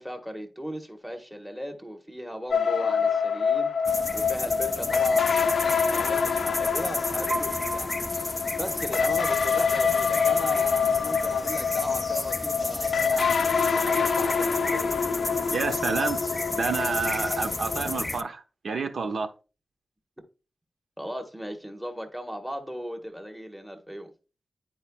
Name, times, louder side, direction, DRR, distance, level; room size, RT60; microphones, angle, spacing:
voice 1, 0.0-8.0 8.5-15.0 21.0-24.1, equal, 5° right, 1.2 m, -38 dB
sound 1, 2.5-18.0, left 6 dB, 75° left, 0.5 m, -26 dB
sound 2, 3.9-18.2, left 2 dB, 20° left, 0.3 m, -33 dB
Piano, 7.3-9.3, right 1 dB, 40° right, 1.2 m, -37 dB
voice 2, 15.5-16.2 16.5-19.3, right 4 dB, 65° right, 0.9 m, -29 dB
10.0 x 4.4 x 2.3 m
wide cardioid pair, 125°, 0 cm